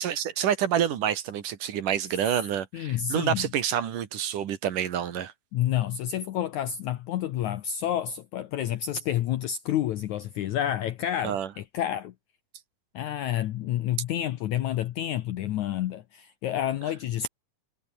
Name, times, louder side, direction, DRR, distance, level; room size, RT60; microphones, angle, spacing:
voice 1, 0.0-5.3 11.2-11.5, right 9 dB, 60° right, 3.1 m, -28 dB
voice 2, 2.7-3.5 5.5-12.1 12.9-17.3, left 11 dB, 70° left, 1.8 m, -29 dB
omnidirectional pair, 4.4 m